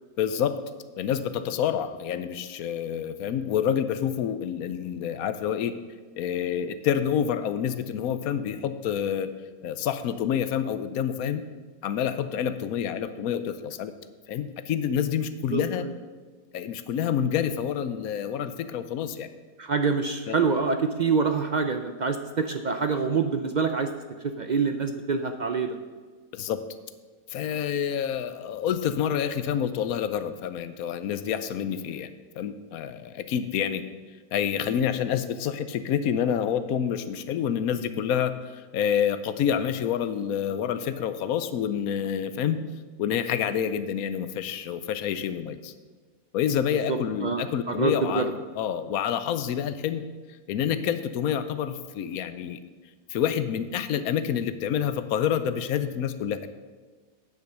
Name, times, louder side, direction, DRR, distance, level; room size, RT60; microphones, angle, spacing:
voice 1, 0.2-0.6 1.0-5.8 6.2-9.3 9.6-11.4 11.8-13.9 14.3-15.8 16.5-19.3 20.3-20.4 26.3-26.6 27.3-32.1 32.3-33.8 34.3-42.6 43.0-45.7 46.3-48.3 48.6-50.0 50.5-52.6 53.1-56.5, left 8 dB, 80° left, 11 dB, 1.1 m, -28 dB
voice 2, 15.5-15.9 19.6-23.9 24.2-25.8 46.9-48.3, right 4 dB, 70° right, 7 dB, 0.4 m, -26 dB
9.0 x 8.1 x 6.6 m, 1.4 s
omnidirectional pair, 1.5 m